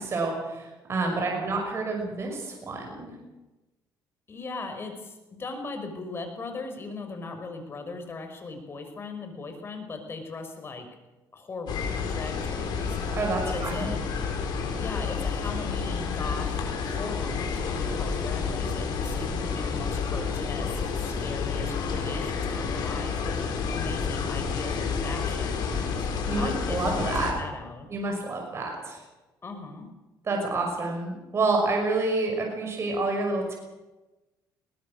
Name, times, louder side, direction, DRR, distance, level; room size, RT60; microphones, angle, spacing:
voice 1, 0.0-3.2 13.1-13.9 26.3-27.3 27.9-29.0 30.3-33.5, right 3 dB, 35° right, 1 dB, 6.0 m, -28 dB
voice 2, 1.2-1.5 4.3-10.9 11.3-13.2 13.4-14.0 14.8-16.5 16.8-26.1 26.4-27.9 29.4-29.9, left 3 dB, 35° left, 6 dB, 4.9 m, -39 dB
sound 1, 11.7-27.3, left 5 dB, 70° left, 5.0 m, -30 dB
21.5 x 19.0 x 6.5 m, 1.1 s
cardioid pair, 105°, 7 cm